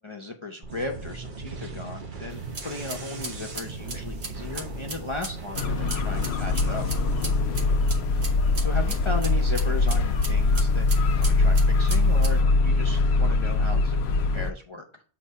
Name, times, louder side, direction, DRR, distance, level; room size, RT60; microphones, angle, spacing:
voice 1, 0.0-6.8 8.1-8.2 8.6-15.0, left 2 dB, 35° left, 2 dB, 0.6 m, -36 dB
sound 1, 0.6-8.3, right 3 dB, 50° right, 1.0 m, -38 dB
sound 2, 2.3-12.4, right 2 dB, 80° right, 1.6 m, -40 dB
sound 3, 5.5-14.5, left 3 dB, 75° left, 0.8 m, -22 dB
7.9 x 2.8 x 5.4 m, 0.42 s
omnidirectional pair, 1.1 m